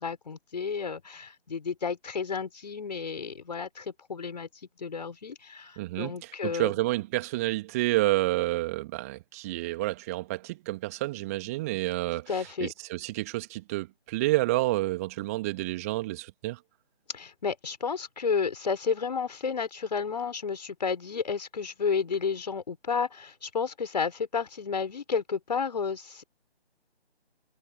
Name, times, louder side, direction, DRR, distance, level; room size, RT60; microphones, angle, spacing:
voice 1, 0.0-4.5 4.8-6.7 12.3-12.7 17.1-26.2, left 5 dB, 40° left, 5.7 m, -31 dB
voice 2, 5.8-16.6, right 19 dB, 15° right, 2.6 m, -29 dB
figure-of-eight pair, 150°, 32 cm